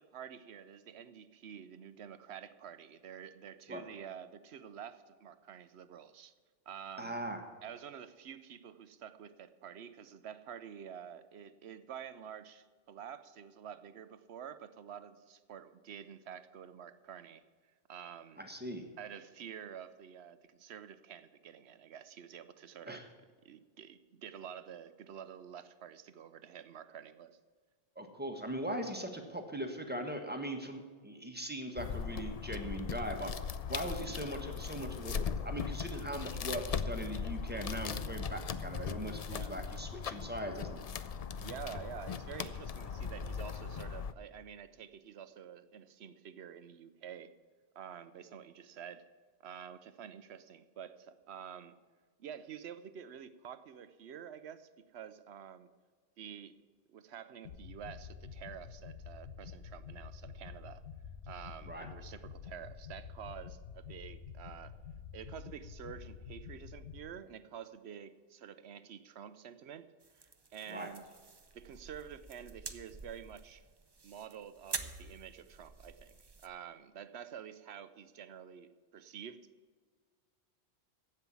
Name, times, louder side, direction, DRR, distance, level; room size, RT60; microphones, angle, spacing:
voice 1, 0.0-6.3 6.7-7.2 7.6-17.4 17.9-18.4 19.0-23.0 23.4-27.4 33.9-34.1 39.3-39.5 41.4-47.3 47.8-49.1 49.4-51.8 52.2-55.7 56.2-56.6 56.9-60.8 61.2-64.8 65.1-69.9 70.2-71.0 71.5-73.6 74.0-79.5, right 8 dB, 75° right, 13 dB, 0.9 m, -49 dB
voice 2, 7.0-7.4 18.4-18.9 22.8-23.1 27.9-33.3 33.7-40.8 61.6-61.9 70.7-70.9, right 1 dB, 10° right, 4 dB, 1.4 m, -40 dB
sound 1, 31.8-44.1, left 6 dB, 50° left, 0.4 m, -39 dB
sound 2, 57.4-67.0, left 6 dB, 80° left, 1.2 m, -48 dB
sound 3, 70.0-76.5, right 4 dB, 25° right, 0.6 m, -47 dB
15.0 x 5.7 x 8.3 m, 1.5 s
omnidirectional pair, 1.1 m